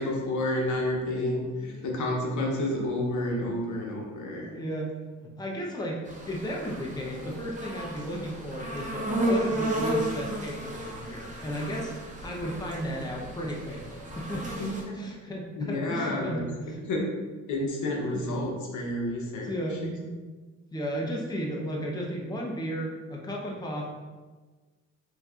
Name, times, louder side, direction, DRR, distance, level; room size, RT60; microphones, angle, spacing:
voice 1, 0.0-4.5 14.6-15.0 15.6-17.0 17.5-19.5 19.8-19.9, left 1 dB, 75° left, -1 dB, 1.0 m, -30 dB
voice 2, 4.3-4.9 5.2-14.5 14.9-17.1 18.1-18.5 19.4-20.2 20.7-23.9, equal, 15° left, -2 dB, 0.8 m, -34 dB
sound 1, 6.0-14.8, right 1 dB, 25° right, 0.9 m, -33 dB
5.8 x 2.8 x 2.5 m, 1.3 s
cardioid pair, 90°, 30 cm